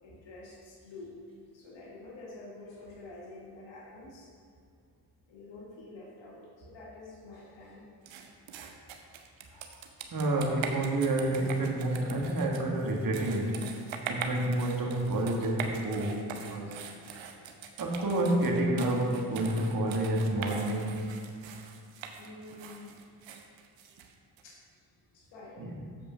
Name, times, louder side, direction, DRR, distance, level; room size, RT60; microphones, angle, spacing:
voice 1, 0.0-1.1 1.5-4.3 5.3-7.9 9.5-9.7 22.2-23.0 24.4-24.6 25.1-25.8, left 2 dB, 75° left, -4 dB, 1.6 m, -48 dB
sound 1, 8.1-24.4, right 6 dB, 80° right, 0.8 m, -42 dB
voice 2, 10.1-16.8 17.8-21.1 25.6-25.7, right 1 dB, 50° right, -1 dB, 1.8 m, -29 dB
7.6 x 5.0 x 5.8 m, 2.3 s
supercardioid pair, 50°, 45 cm